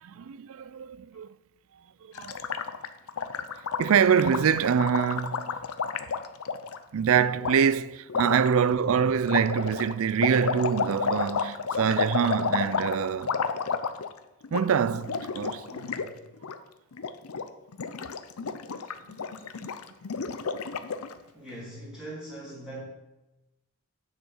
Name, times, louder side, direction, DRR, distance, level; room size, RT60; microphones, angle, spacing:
voice 1, 0.0-1.3 2.0-2.5 3.8-5.5 6.9-13.4 14.5-15.7 19.6-19.7, right 7 dB, 65° right, 0.4 m, -25 dB
Gurgling, 2.1-6.8 7.4-7.5 8.1-8.5 9.2-14.2 14.4-14.6 14.9-16.1 16.3-16.6 16.9-17.4 17.7-21.1, left 5 dB, 80° left, 0.7 m, -31 dB
voice 2, 15.6-16.2 21.3-22.8, right 1 dB, 5° right, 2.7 m, -42 dB
9.6 x 7.2 x 5.6 m
head